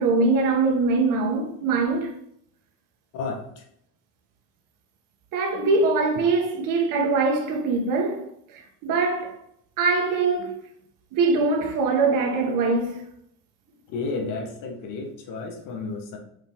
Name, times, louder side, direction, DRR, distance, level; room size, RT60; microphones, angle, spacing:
voice 1, 0.0-2.1 5.3-8.3 8.5-9.4 9.8-10.7 11.1-13.0, right 3 dB, 55° right, 1.8 m, -23 dB
voice 2, 3.1-3.6 13.9-16.2, left 3 dB, 55° left, 1.8 m, -32 dB
6.7 x 5.5 x 3.8 m
cardioid pair, 130°, 37 cm